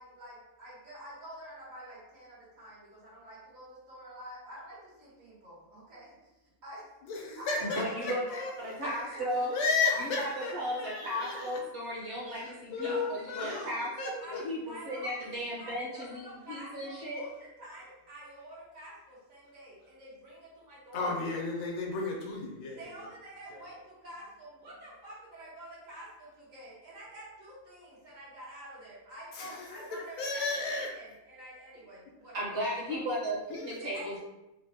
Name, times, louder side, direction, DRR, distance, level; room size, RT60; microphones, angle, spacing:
voice 1, 0.0-6.3 6.6-6.8 7.4-8.5 9.4-9.5 9.8-10.5 12.8-13.8 14.2-21.2 22.7-32.4 32.9-33.0 33.8-34.2, right 1 dB, 75° right, -9 dB, 1.6 m, -47 dB
voice 2, 7.0-8.6 8.9-9.2 9.5-10.5 10.8-11.5 12.3-13.6 14.0-14.4 20.9-22.8 23.5-23.6 29.3-29.8 30.2-30.9 33.5-33.7, left 4 dB, 85° left, -1 dB, 1.1 m, -33 dB
voice 3, 7.6-8.2 8.6-9.5 10.0-12.9 13.3-17.2 32.3-34.2, equal, 60° right, -5 dB, 1.2 m, -35 dB
3.3 x 2.1 x 2.7 m, 0.96 s
omnidirectional pair, 1.4 m